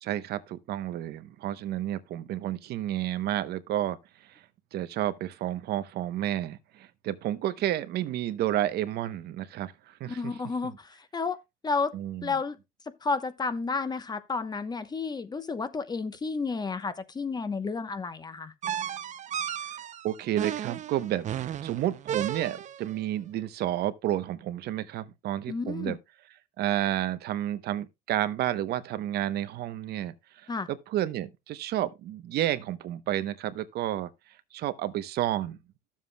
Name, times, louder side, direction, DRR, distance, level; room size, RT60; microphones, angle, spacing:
voice 1, 0.0-4.0 4.7-10.3 11.9-12.4 20.0-26.0 26.6-30.1 30.4-34.1 34.5-35.6, right 12 dB, 70° right, 0.8 m, -31 dB
voice 2, 10.1-11.4 11.6-11.9 12.2-12.6 13.0-18.5 25.5-26.0 30.5-30.7, left 4 dB, 25° left, 0.9 m, -31 dB
sound 1, 18.6-22.9, right 10 dB, 45° right, 0.6 m, -34 dB
13.0 x 7.4 x 2.2 m
cardioid pair, 110°, 17 cm